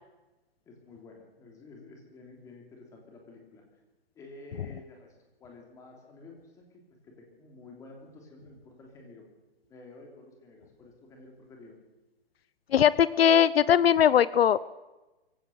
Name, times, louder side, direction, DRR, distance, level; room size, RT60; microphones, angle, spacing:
voice 1, 0.6-3.8 4.1-9.3 9.7-11.8, left 2 dB, 10° left, 1 dB, 3.2 m, -51 dB
voice 2, 12.7-14.6, left 9 dB, 70° left, 19 dB, 0.7 m, -20 dB
23.0 x 16.0 x 7.9 m, 1.1 s
hypercardioid pair, 175°, 31 cm